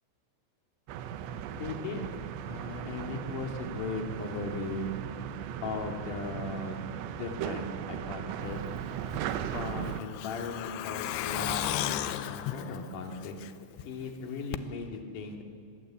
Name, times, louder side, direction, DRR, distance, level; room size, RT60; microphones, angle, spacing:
sound 1, 0.9-10.0, right 9 dB, 75° right, 3.0 m, -37 dB
voice 1, 1.5-2.1 2.5-4.9 5.6-8.6 9.5-11.6 11.9-13.4 13.8-15.4, left 3 dB, 50° left, 3 dB, 3.2 m, -37 dB
Truck, 9.1-13.8 14.1-14.2 14.5-14.6, left 12 dB, 80° left, 3.0 m, -35 dB
25.5 x 20.5 x 8.4 m, 2.3 s
omnidirectional pair, 5.6 m